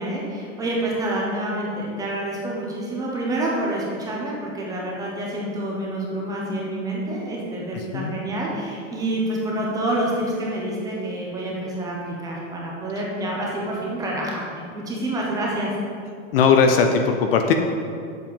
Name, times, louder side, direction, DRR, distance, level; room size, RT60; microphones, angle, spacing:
voice 1, 0.0-15.8, right 1 dB, 10° right, -3 dB, 0.9 m, -27 dB
voice 2, 7.7-8.2 16.3-17.5, left 5 dB, 45° left, 5 dB, 0.7 m, -18 dB
7.7 x 5.6 x 7.0 m, 2.2 s
supercardioid pair, 170°, 41 cm